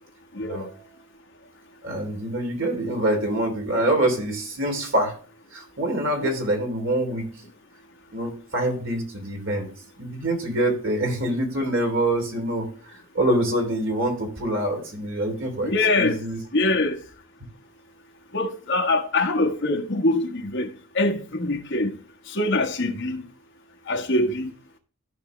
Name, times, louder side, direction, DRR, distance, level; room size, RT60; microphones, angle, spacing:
voice 1, 0.4-0.9 1.8-5.1 5.5-7.3 8.1-9.7 10.0-16.4, right 1 dB, 60° right, 3.1 m, -25 dB
voice 2, 15.6-16.2 16.5-17.0 18.3-20.7 20.9-21.9 22.3-23.2 23.9-24.5, left 2 dB, 55° left, 1.4 m, -23 dB
14.5 x 5.1 x 3.2 m
head